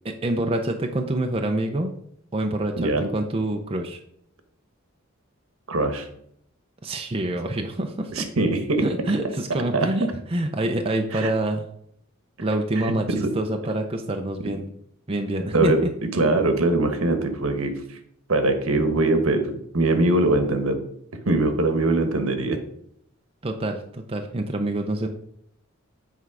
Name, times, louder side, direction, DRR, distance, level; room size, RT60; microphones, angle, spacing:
voice 1, 0.0-1.9 2.3-4.0 6.8-8.1 8.8-11.7 12.4-14.6 15.1-15.9 23.4-25.1, right 1 dB, 25° right, 3 dB, 0.6 m, -26 dB
voice 2, 2.8-3.1 5.7-6.1 8.1-8.8 9.7-9.9 11.1-11.3 13.1-13.3 15.5-18.0 18.3-20.8 21.2-22.6, right 2 dB, 75° right, 7 dB, 1.2 m, -22 dB
8.1 x 4.6 x 4.8 m, 0.70 s
head